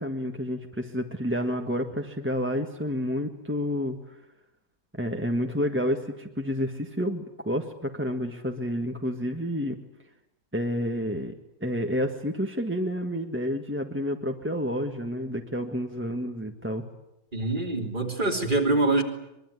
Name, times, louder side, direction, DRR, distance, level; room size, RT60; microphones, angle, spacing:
voice 1, 0.0-4.0 5.0-9.8 10.5-11.3 11.6-16.8, equal, 5° right, 3 dB, 1.5 m, -29 dB
voice 2, 17.3-19.0, right 2 dB, 30° right, 2 dB, 3.5 m, -24 dB
24.0 x 23.0 x 9.6 m, 0.88 s
omnidirectional pair, 1.8 m